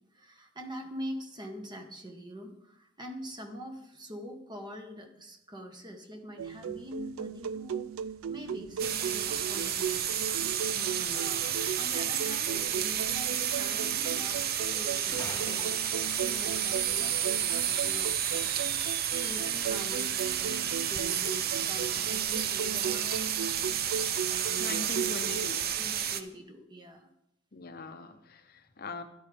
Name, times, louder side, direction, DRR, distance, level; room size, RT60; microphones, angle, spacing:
voice 1, 0.1-7.9 8.3-10.8 11.1-11.5 11.8-15.8 16.2-18.5 19.2-23.5 24.3-25.0 25.5-27.1, equal, 20° right, 4 dB, 1.3 m, -44 dB
sound 1, 6.4-25.5, right 7 dB, 85° right, 0.4 m, -37 dB
sound 2, 8.8-26.2, right 9 dB, 50° right, 0.6 m, -31 dB
voice 2, 10.7-11.2 24.6-25.6 27.5-29.0, left 3 dB, 50° left, 8 dB, 0.8 m, -41 dB
Bathtub (filling or washing) / Splash splatter, 14.8-19.8 20.0-20.1, left 2 dB, 15° left, 1.1 m, -48 dB
13.0 x 11.0 x 3.5 m, 0.81 s
head